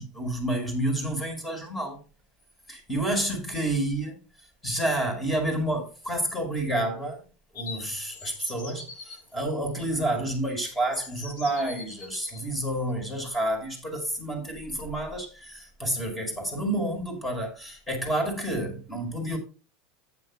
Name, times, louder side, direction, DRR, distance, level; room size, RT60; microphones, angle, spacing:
voice 1, 0.0-2.0 2.7-4.2 4.6-7.2 7.5-19.4, right 1 dB, 10° left, 5.2 m, -29 dB
sound 1, 7.5-9.2 10.3-10.4 10.9-12.4, left 4 dB, 75° left, 6.4 m, -42 dB
14.5 x 9.3 x 2.3 m
supercardioid pair, 140°, 0 cm